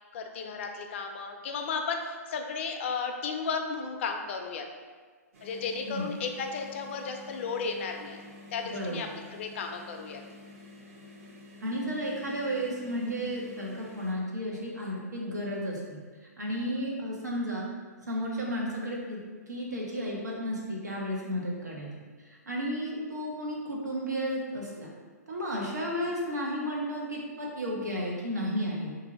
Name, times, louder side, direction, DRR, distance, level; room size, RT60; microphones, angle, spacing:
voice 1, 0.1-4.7 5.4-8.2 8.5-10.2, left 5 dB, 45° left, 4 dB, 0.4 m, -34 dB
sound 1, 5.3-14.1, left 2 dB, 55° right, 0.9 m, -49 dB
voice 2, 8.6-9.1 11.6-17.6 18.1-19.2 19.5-21.9 22.2-24.9 25.3-28.9, equal, 85° right, -3 dB, 0.9 m, -33 dB
2.6 x 2.6 x 4.1 m, 1.5 s
figure-of-eight pair, 125°, 9 cm